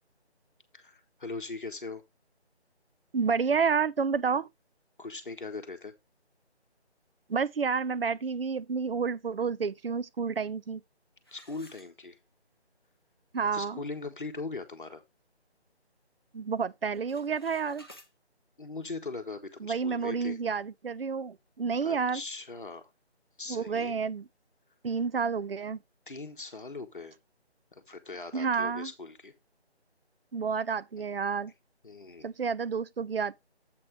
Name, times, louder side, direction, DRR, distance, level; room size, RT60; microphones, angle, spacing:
voice 1, 0.7-2.0 5.0-5.9 11.3-12.2 13.5-15.0 18.6-20.4 21.8-22.9 23.4-23.9 26.1-27.2 27.7-29.3 31.8-32.3, left 3 dB, 50° left, 1.2 m, -40 dB
voice 2, 3.1-4.5 7.3-10.8 13.3-13.8 16.3-17.8 19.6-22.2 23.5-24.2 24.8-25.8 28.3-28.9 30.3-31.5 32.2-33.4, right 5 dB, 60° right, 0.5 m, -30 dB
sound 1, 11.2-12.5 13.0-13.1 13.6-13.7 14.1-14.4 14.8-16.0 16.2-16.6 16.8-18.1, equal, 20° left, 0.7 m, -56 dB
7.8 x 3.3 x 6.0 m
figure-of-eight pair, 160°, 34 cm